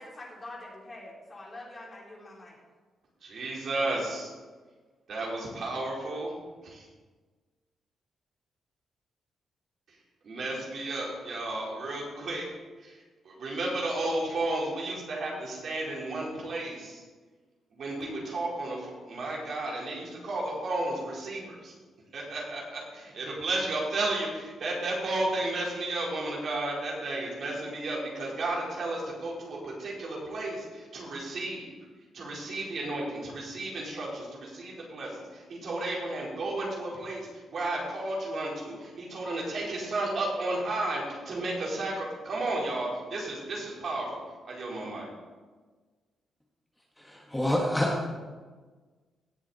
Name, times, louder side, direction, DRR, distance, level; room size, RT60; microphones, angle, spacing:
voice 1, 0.0-2.6, left 2 dB, 30° left, -3 dB, 3.9 m, -45 dB
voice 2, 3.2-4.3 5.1-6.4 6.6-6.9 10.2-12.5 12.8-13.0 13.2-17.0 17.7-21.7 22.1-31.7 32.1-45.1, right 2 dB, 60° right, -3 dB, 4.2 m, -33 dB
voice 3, 47.0-48.0, left 1 dB, 10° left, -1 dB, 1.7 m, -27 dB
17.0 x 7.3 x 4.3 m, 1.4 s
cardioid pair, 80°, 0 cm